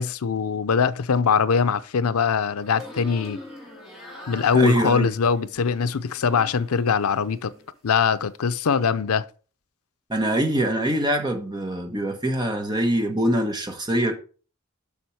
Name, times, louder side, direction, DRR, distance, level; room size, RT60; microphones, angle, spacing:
voice 1, 0.0-3.4 4.3-7.5 7.8-9.3, left 6 dB, 90° left, 0.6 m, -22 dB
sound 1, 2.6-7.0 7.3-8.1, left 1 dB, ahead, 2.7 m, -43 dB
voice 2, 4.5-5.1 10.1-14.2, right 1 dB, 20° right, 1.4 m, -24 dB
7.2 x 6.3 x 4.7 m
head